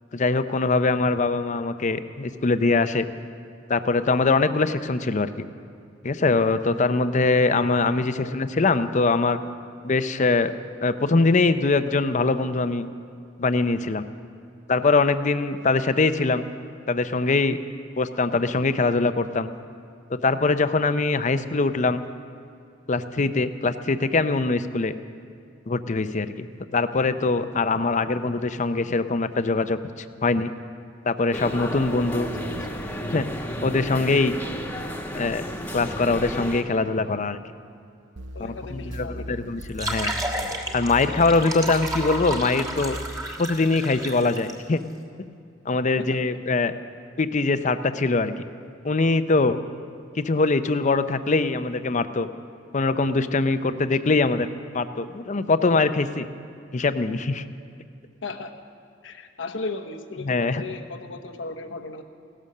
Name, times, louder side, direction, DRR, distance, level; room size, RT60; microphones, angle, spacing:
voice 1, 0.1-3.0 3.7-5.4 6.0-9.4 9.8-10.5 10.8-12.9 13.4-14.0 14.7-16.4 16.9-17.6 18.0-19.5 20.1-22.0 22.9-24.9 25.7-26.5 26.7-29.8 30.2-30.5 31.0-32.3 33.1-33.3 33.6-34.3 35.1-35.5 35.7-37.4 38.4-40.1 40.7-43.0 43.4-44.8 45.7-46.7 47.2-48.4 48.8-49.6 50.1-52.3 52.7-54.5 54.7-56.3 56.7-57.4 60.2-60.6, left 3 dB, 40° left, 11 dB, 0.6 m, -22 dB
sound 1, 31.3-36.6, equal, 10° left, 1.2 m, -32 dB
sound 2, 38.2-43.2, equal, 75° right, 0.9 m, -38 dB
voice 2, 38.3-39.4 46.0-46.1 58.2-58.5 59.0-62.0, left 3 dB, 80° left, 5 dB, 1.1 m, -36 dB
sound 3, 39.6-44.5, right 1 dB, 20° right, 1.5 m, -32 dB
17.0 x 12.5 x 6.6 m, 2.4 s
head